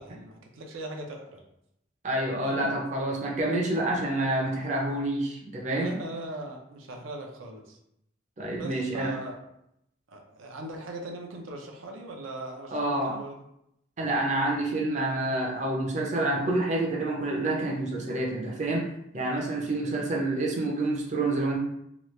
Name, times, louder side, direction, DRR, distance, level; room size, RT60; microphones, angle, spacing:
voice 1, 0.0-1.4 2.4-2.7 3.9-4.0 5.8-7.8 8.5-9.4 10.1-13.4 19.9-20.1, right 1 dB, 85° right, 1 dB, 0.5 m, -40 dB
voice 2, 2.0-5.9 8.4-9.1 12.7-13.2 14.0-18.9 19.1-21.6, right 2 dB, 35° right, -2 dB, 0.5 m, -28 dB
3.0 x 2.3 x 3.1 m, 0.78 s
head